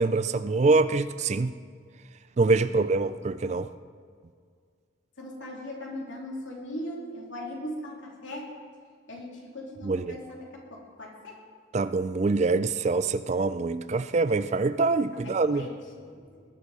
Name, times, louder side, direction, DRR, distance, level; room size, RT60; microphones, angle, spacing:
voice 1, 0.0-1.5 2.4-3.7 9.8-10.0 11.7-15.6, right 3 dB, 35° right, 13 dB, 0.4 m, -24 dB
voice 2, 2.5-2.9 5.2-8.5 9.1-11.4 15.4-16.4, left 1 dB, 65° left, -2 dB, 3.2 m, -39 dB
20.5 x 11.0 x 4.9 m, 2.1 s
head